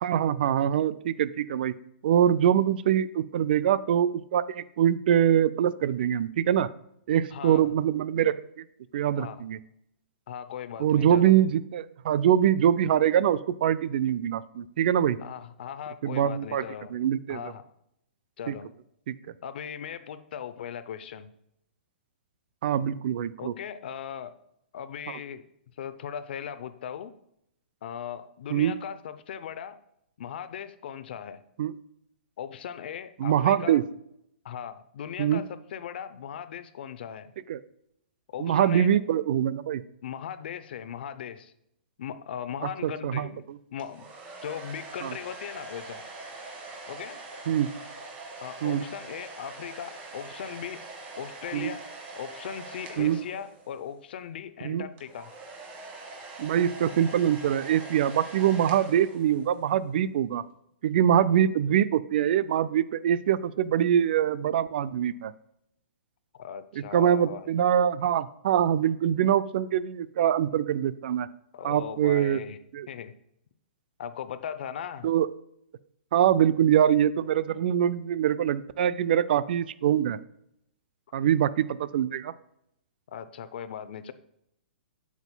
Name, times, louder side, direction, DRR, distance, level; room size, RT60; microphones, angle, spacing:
voice 1, 0.0-1.7 2.0-6.7 7.1-8.6 8.9-9.6 10.8-15.2 16.0-16.6 16.9-17.4 18.5-18.6 19.1-19.2 22.6-23.5 28.5-28.8 31.6-31.7 33.2-33.8 35.2-35.4 37.5-37.6 38.4-39.8 42.8-43.6 45.0-45.1 47.5-47.7 48.6-48.8 51.5-51.7 53.0-53.2 54.6-54.9 56.4-60.4 60.8-65.3 66.8-71.3 71.6-72.4 72.7-72.9 75.0-75.3 76.1-80.2 81.1-82.3, right 10 dB, 60° right, 16 dB, 0.3 m, -24 dB
voice 2, 7.3-7.8 9.2-9.4 10.3-11.4 15.2-16.9 17.3-17.7 18.4-18.7 19.4-21.3 23.4-24.3 24.7-25.4 25.8-27.1 27.8-29.8 30.2-31.4 32.4-33.8 34.4-37.3 38.3-39.0 40.0-41.5 42.0-43.4 43.7-44.1 44.4-46.0 46.9-47.2 48.4-50.8 51.2-51.8 52.2-55.3 66.3-67.5 71.5-72.6 72.9-73.1 74.0-75.1 81.1-81.2 83.1-84.1, left 8 dB, 65° left, 13 dB, 0.6 m, -38 dB
sound 1, 43.8-53.9 55.0-59.7, right 3 dB, 25° right, 1.5 m, -43 dB
8.0 x 7.1 x 2.2 m, 0.77 s
hypercardioid pair, 135°, 6 cm